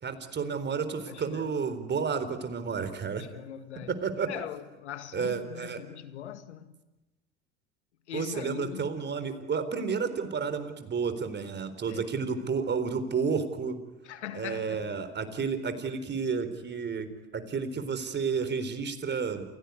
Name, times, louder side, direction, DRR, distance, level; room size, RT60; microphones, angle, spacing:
voice 1, 0.0-3.2 4.0-4.3 5.1-5.8 8.1-13.8 14.3-17.1 17.3-19.4, right 5 dB, 30° right, 4.0 m, -31 dB
voice 2, 1.1-1.6 3.2-4.0 4.3-6.8 8.1-9.0 11.9-12.1 14.0-14.9, left 10 dB, 80° left, 2.0 m, -41 dB
28.5 x 17.0 x 9.7 m
hypercardioid pair, 75°, 33 cm